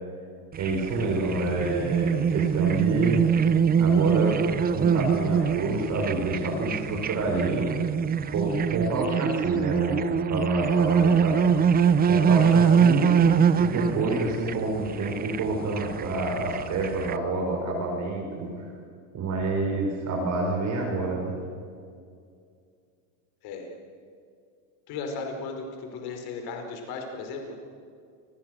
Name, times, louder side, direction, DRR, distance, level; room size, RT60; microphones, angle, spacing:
sound 1, 0.5-17.2, right 7 dB, 20° right, 0.7 m, -24 dB
voice 1, 0.6-3.3 3.8-4.4 4.7-7.7 8.3-11.6 12.1-13.1 13.6-18.5 19.1-21.3, right 2 dB, 35° right, -1 dB, 5.7 m, -28 dB
voice 2, 24.9-27.6, left 4 dB, 50° left, 3 dB, 5.1 m, -35 dB
29.0 x 21.0 x 6.6 m, 2.3 s
supercardioid pair, 135°, 47 cm